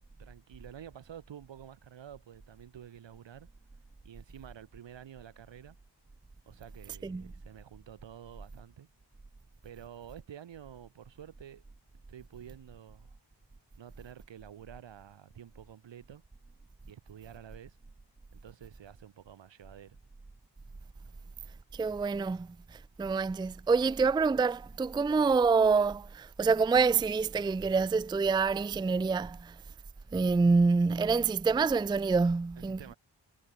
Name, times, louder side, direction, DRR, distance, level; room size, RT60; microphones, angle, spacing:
voice 1, 0.0-3.5 4.0-5.8 6.5-8.9 9.6-11.6 12.1-13.2 13.8-16.2 16.9-17.8 18.3-20.0 32.6-33.0, right 9 dB, 80° right, 2.3 m, -50 dB
voice 2, 21.7-29.6 30.1-32.8, right 4 dB, 10° right, 0.4 m, -27 dB
cardioid pair, 60°, 43 cm